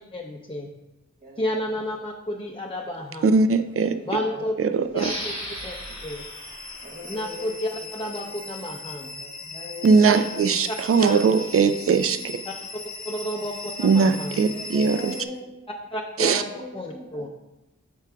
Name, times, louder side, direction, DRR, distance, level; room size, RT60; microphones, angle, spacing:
voice 1, 0.1-0.7 1.4-3.3 4.1-4.5 4.9-5.3 5.6-5.7 6.0-6.2 7.1-9.2 10.1-10.2 10.7-11.3 12.5-12.6 13.0-14.4 15.9-16.4 16.7-17.3, equal, 20° left, -1 dB, 0.6 m, -31 dB
voice 2, 1.2-1.8 3.9-4.5 6.8-8.1 9.0-10.4 13.3-13.4 14.5-15.5 16.5-17.3, left 1 dB, 30° right, -2 dB, 1.2 m, -41 dB
voice 3, 3.2-4.0 4.6-5.1 9.8-12.4 13.8-15.1 16.2-16.4, right 5 dB, 50° right, 10 dB, 0.5 m, -20 dB
sound 1, 4.9-8.2, equal, 65° right, 2.5 m, -37 dB
sound 2, 5.0-15.3, left 3 dB, 70° left, 0.7 m, -39 dB
11.5 x 4.6 x 2.3 m, 0.98 s
wide cardioid pair, 60°, 30 cm